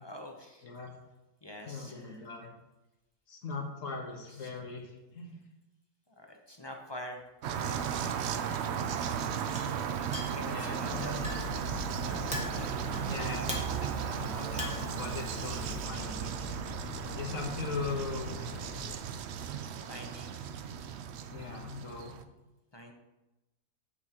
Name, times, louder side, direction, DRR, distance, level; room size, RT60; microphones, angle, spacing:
voice 1, 0.0-0.7 1.4-2.3 4.3-4.6 6.1-7.2 7.6-8.2 9.9-11.6 12.0-13.6 19.9-20.4 22.7-22.9, left 1 dB, 25° left, 2 dB, 0.5 m, -46 dB
voice 2, 0.6-0.9 1.7-2.5 3.3-5.4 10.5-11.3 13.1-16.3 17.1-18.3 21.3-22.2, left 4 dB, 55° left, 2 dB, 1.6 m, -40 dB
sound 1, 7.4-22.2, right 8 dB, 75° right, 0.6 m, -36 dB
Chink clink, 7.5-15.8, left 1 dB, 5° right, 1.3 m, -45 dB
sound 2, 10.9-19.0, left 6 dB, 75° left, 1.3 m, -44 dB
9.6 x 7.1 x 2.9 m, 1.0 s
omnidirectional pair, 1.7 m